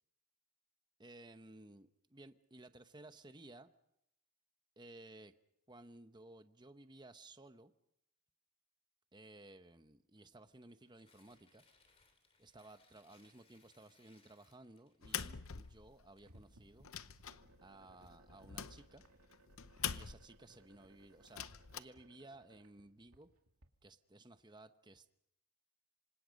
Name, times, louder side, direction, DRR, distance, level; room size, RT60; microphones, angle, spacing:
voice 1, 1.0-3.7 4.8-5.3 5.7-7.7 9.1-11.6 12.4-16.9 17.6-19.0 19.9-21.5 21.7-23.3 23.8-25.1, right 2 dB, 20° right, 10 dB, 1.0 m, -57 dB
Tearing, 10.6-16.8, left 4 dB, 25° left, 2.9 m, -72 dB
sound 1, 15.0-16.2 16.6-20.5 21.2-21.8, left 9 dB, 65° left, 0.8 m, -45 dB
sound 2, 16.2-23.7, right 2 dB, 85° right, 2.3 m, -66 dB
27.0 x 26.0 x 5.3 m, 0.80 s
head